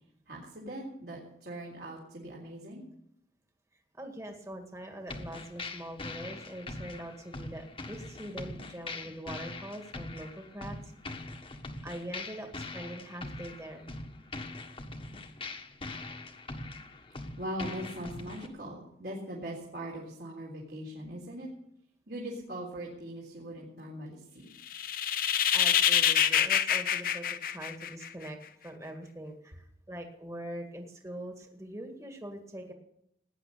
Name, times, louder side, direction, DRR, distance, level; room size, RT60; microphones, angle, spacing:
voice 1, 0.3-2.8 8.6-8.7 15.1-15.2 17.4-21.5 22.1-24.5, right 1 dB, 60° right, -3 dB, 3.7 m, -41 dB
voice 2, 3.9-10.8 11.1-11.2 11.8-13.9 25.5-28.4 28.6-32.7, right 1 dB, 15° right, 3 dB, 2.0 m, -43 dB
sound 1, 5.1-18.5, left 2 dB, 30° left, 1.5 m, -42 dB
sound 2, 24.7-28.3, left 9 dB, 50° left, 0.8 m, -26 dB
18.5 x 10.0 x 6.9 m, 0.75 s
head